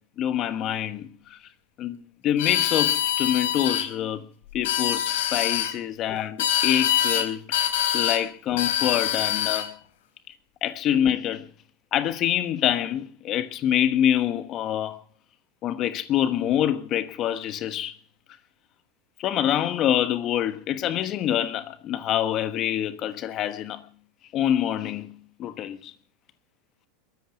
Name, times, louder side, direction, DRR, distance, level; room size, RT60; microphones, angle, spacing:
voice 1, 0.2-1.4 1.8-2.0 2.2-4.2 4.5-7.4 7.9-9.7 10.6-11.5 11.9-15.0 15.6-18.0 19.2-23.8 24.3-25.1 25.4-25.9, left 10 dB, 40° left, 1.2 m, -26 dB
sound 1, 2.4-3.9 4.5-5.7 6.4-7.3 7.5-8.2 8.6-9.7, left 11 dB, 75° left, 4.5 m, -24 dB
22.0 x 10.5 x 5.9 m
supercardioid pair, 125°, 0 cm